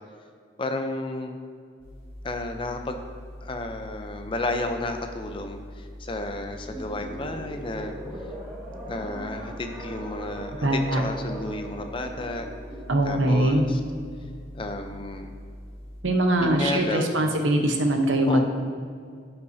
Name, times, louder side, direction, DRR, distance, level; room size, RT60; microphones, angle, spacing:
voice 1, 0.6-1.4 2.2-3.0 3.4-7.9 8.9-12.5 13.0-13.8 14.5-15.3 16.4-17.3 18.3-18.4, left 2 dB, 25° left, 6 dB, 0.5 m, -32 dB
sound 1, 1.8-16.0, equal, 35° right, 1.6 m, -43 dB
sound 2, 6.6-13.1, right 1 dB, 10° right, 1.5 m, -40 dB
voice 2, 10.6-11.1 12.9-13.6 16.0-18.4, right 1 dB, 90° right, 4 dB, 0.9 m, -22 dB
13.5 x 5.6 x 2.7 m, 2.2 s
head